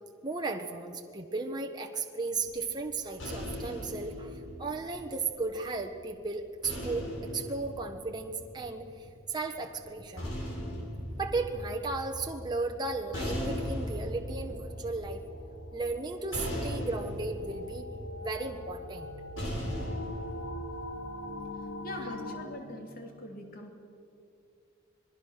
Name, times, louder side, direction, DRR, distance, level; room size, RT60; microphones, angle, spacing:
voice 1, 0.2-10.3 11.2-15.2 15.7-17.8 18.2-19.1, right 3 dB, 20° right, 2 dB, 1.2 m, -35 dB
sound 1, 2.4-5.7 6.6-8.9 9.8-20.9, equal, 70° left, 7.2 m, -39 dB
sound 2, 12.9-22.5, left 1 dB, 90° left, 3.2 m, -44 dB
voice 2, 21.8-23.7, left 1 dB, 45° left, 3 dB, 2.9 m, -42 dB
26.5 x 20.5 x 6.6 m, 2.5 s
head